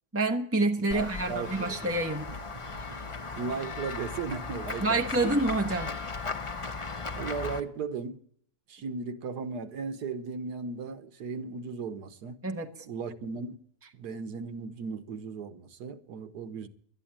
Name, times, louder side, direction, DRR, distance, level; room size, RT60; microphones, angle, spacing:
voice 1, 0.1-2.3 4.8-6.0 12.4-12.7, right 2 dB, 15° right, 0.5 m, -27 dB
Run / Walk footsteps / Bell, 0.9-7.6, left 4 dB, 25° left, 0.7 m, -37 dB
voice 2, 0.9-1.9 2.3-2.4 3.4-5.4 7.1-8.2 8.7-12.4 12.9-13.6 13.9-16.7, right 5 dB, 70° right, 1.6 m, -36 dB
12.0 x 9.9 x 8.7 m
omnidirectional pair, 1.8 m